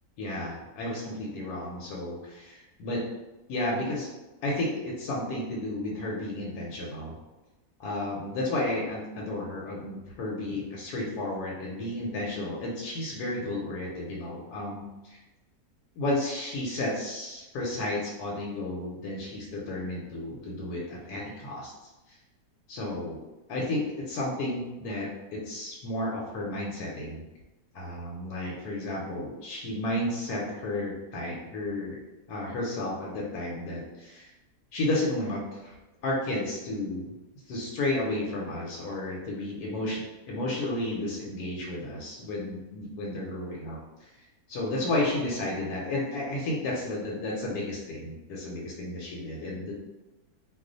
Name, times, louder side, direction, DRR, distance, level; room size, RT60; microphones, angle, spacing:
voice 1, 0.2-3.0 3.5-4.1 4.4-7.1 7.8-15.2 16.0-21.7 22.7-23.2 23.5-27.2 27.7-32.0 32.3-34.3 34.7-35.7 36.0-37.1 37.5-44.1 44.5-49.7, left 1 dB, 80° left, -3 dB, 1.1 m, -32 dB
2.4 x 2.3 x 3.8 m, 1.1 s
omnidirectional pair, 1.7 m